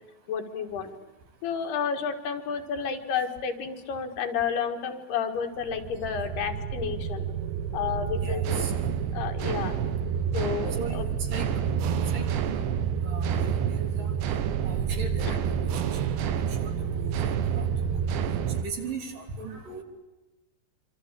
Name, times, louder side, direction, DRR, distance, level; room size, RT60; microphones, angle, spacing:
voice 1, 0.3-0.9 1.4-7.3 7.7-8.6 9.1-9.7 10.3-11.1 15.3-15.4, left 7 dB, 70° left, 5 dB, 4.1 m, -31 dB
sound 1, 5.6-18.6, right 8 dB, 85° right, 3.7 m, -28 dB
voice 2, 8.2-8.7 10.8-11.5 12.1-12.6 13.0-13.5 13.8-14.1 14.7-17.9 18.5-19.8, right 4 dB, 55° right, 4 dB, 4.9 m, -39 dB
26.5 x 26.0 x 8.4 m, 1.0 s
omnidirectional pair, 4.8 m